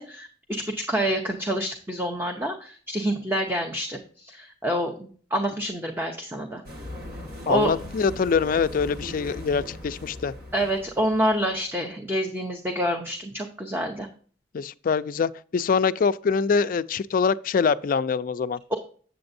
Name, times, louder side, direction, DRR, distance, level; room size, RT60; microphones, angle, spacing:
voice 1, 0.0-6.6 7.5-7.7 10.5-14.1, equal, 10° right, 0.7 m, -27 dB
sound 1, 6.7-11.7, left 1 dB, 55° right, 1.7 m, -39 dB
voice 2, 7.4-10.3 14.5-18.6, left 5 dB, 50° left, 0.3 m, -24 dB
7.9 x 7.7 x 2.6 m
head